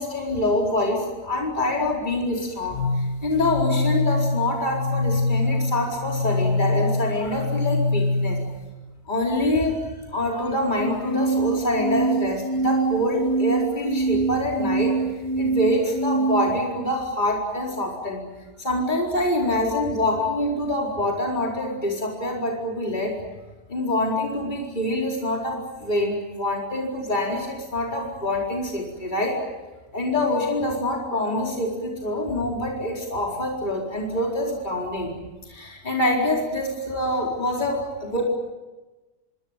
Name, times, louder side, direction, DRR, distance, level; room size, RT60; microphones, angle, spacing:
voice 1, 0.0-8.4 9.1-15.0 15.4-18.3 18.6-23.2 23.7-29.4 29.9-35.1 35.4-38.3, left 1 dB, 30° left, -1 dB, 4.7 m, -25 dB
sound 1, 2.7-8.7 10.7-16.7, equal, 80° left, 2.1 m, -24 dB
26.0 x 24.5 x 9.1 m, 1.2 s
omnidirectional pair, 1.6 m